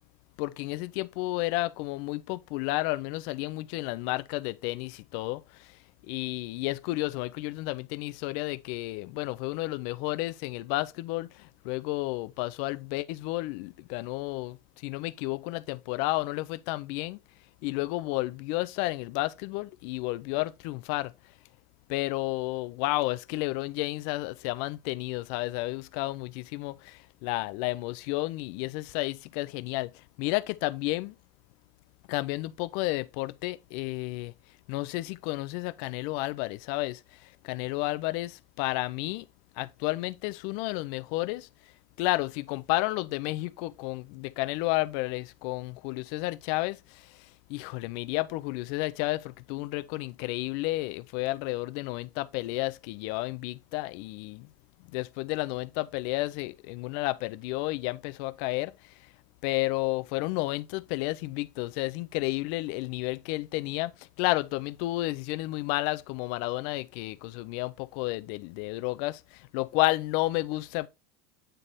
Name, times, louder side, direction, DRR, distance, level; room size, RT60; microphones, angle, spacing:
voice 1, 0.4-5.8 6.1-17.2 17.6-21.1 21.9-31.2 32.1-34.3 34.7-39.3 39.6-41.5 42.0-54.5 54.9-58.9 59.4-70.9, left 20 dB, 60° left, 0.5 m, -31 dB
9.0 x 3.3 x 4.0 m
supercardioid pair, 150°, 8 cm